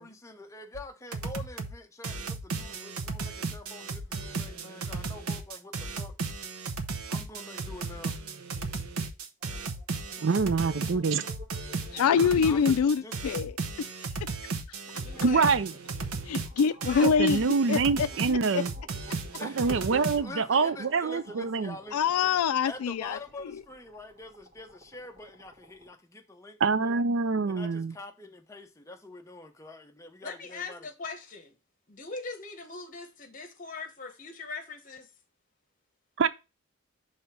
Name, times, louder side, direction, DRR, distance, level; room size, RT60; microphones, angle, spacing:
voice 1, 0.0-6.2 7.1-8.2 12.4-13.2 15.1-15.2 19.4-22.2 22.7-27.0 27.5-30.9, left 2 dB, 15° left, 0.6 m, -45 dB
sound 1, 0.7-0.8 1.1-1.7 2.0-20.2, right 4 dB, 90° right, 0.8 m, -35 dB
sound 2, 9.4-25.9, right 1 dB, 25° right, 1.6 m, -53 dB
voice 2, 10.2-11.2 15.2-15.7 17.0-18.7 19.4-21.7 26.6-27.9 36.2-36.3, right 4 dB, 55° right, 0.4 m, -25 dB
voice 3, 11.9-13.9 15.2-15.3 16.3-17.4 17.7-18.1 18.5-18.6 21.9-23.2, left 6 dB, 90° left, 0.4 m, -25 dB
voice 4, 15.0-15.5 16.8-17.3 30.2-31.5 31.9-35.1, left 3 dB, 40° left, 1.1 m, -40 dB
5.4 x 3.3 x 5.7 m
head